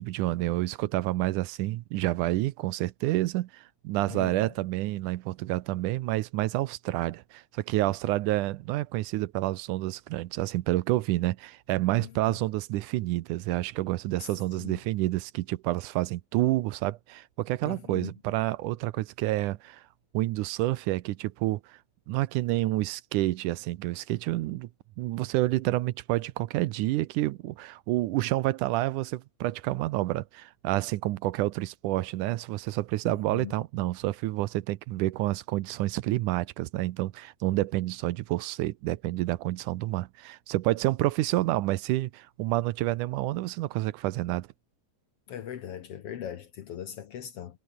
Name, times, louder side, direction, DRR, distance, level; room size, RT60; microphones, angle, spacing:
voice 1, 0.0-19.8 20.1-21.8 22.1-24.7 25.0-44.5, right 17 dB, 80° right, 2.2 m, -29 dB
voice 2, 4.1-4.5 12.0-12.4 14.2-14.3 14.6-14.8 17.6-18.1 33.1-33.5 45.3-47.6, left 10 dB, 60° left, 1.7 m, -40 dB
omnidirectional pair, 3.7 m